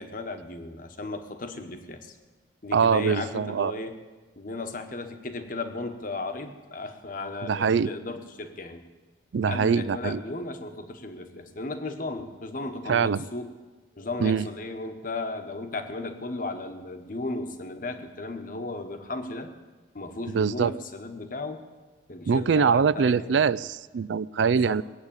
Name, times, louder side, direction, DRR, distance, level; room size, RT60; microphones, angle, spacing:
voice 1, 0.0-2.2 2.6-4.0 4.3-8.8 9.5-13.5 14.0-19.5 19.9-21.6 22.1-23.4 24.5-24.8, left 2 dB, 45° left, 7 dB, 1.2 m, -35 dB
voice 2, 2.7-3.7 7.4-7.9 9.3-10.2 12.9-13.2 14.2-14.5 20.3-20.7 22.3-24.8, right 6 dB, 75° right, 19 dB, 0.4 m, -23 dB
19.5 x 8.1 x 8.8 m, 1.3 s
head